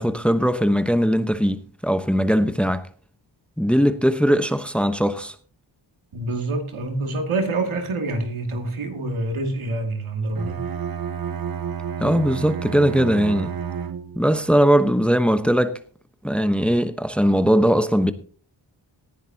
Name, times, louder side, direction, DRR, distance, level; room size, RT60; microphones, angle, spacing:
voice 1, 0.0-2.9 3.6-5.3 12.0-13.5 14.2-15.8 16.2-18.1, equal, ahead, 1.0 m, -20 dB
voice 2, 6.1-10.6, right 2 dB, 85° right, 2.5 m, -26 dB
Bowed string instrument, 10.3-14.4, right 7 dB, 45° right, 0.9 m, -30 dB
18.5 x 10.5 x 2.8 m
cardioid pair, 55°, 48 cm